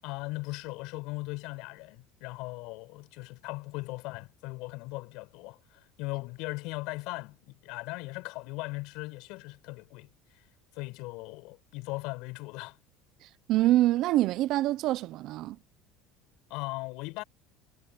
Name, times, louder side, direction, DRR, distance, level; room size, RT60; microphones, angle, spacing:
voice 1, 0.0-10.1 10.3-10.4 10.7-12.8 16.5-17.2, left 24 dB, 70° left, 6.5 m, -38 dB
voice 2, 13.5-15.6, right 15 dB, 60° right, 1.0 m, -25 dB
supercardioid pair, 105°, 0 cm